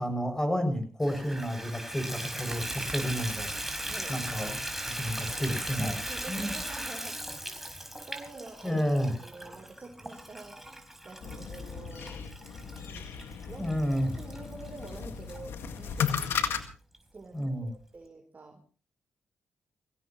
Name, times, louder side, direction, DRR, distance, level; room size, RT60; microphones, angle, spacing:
voice 1, 0.0-3.5 4.1-4.6 5.0-6.5 8.6-9.1 13.6-14.1 17.3-17.7, equal, 15° left, 8 dB, 6.9 m, -30 dB
Water tap faucet / Bathtub (filling or washing), 1.0-15.4 16.0-16.1 16.6-16.7 16.9-17.0, right 1 dB, 5° right, 5.0 m, -39 dB
sound 1, 2.4-6.8 7.7-7.9, right 1 dB, 25° right, 4.8 m, -45 dB
voice 2, 6.1-8.9 9.2-13.1 13.4-16.2 17.1-18.6, right 3 dB, 40° right, 4 dB, 3.6 m, -47 dB
sound 2, 11.2-16.6, left 7 dB, 75° left, 1.9 m, -35 dB
23.0 x 17.0 x 3.1 m, 0.35 s
supercardioid pair, 50°, 4 cm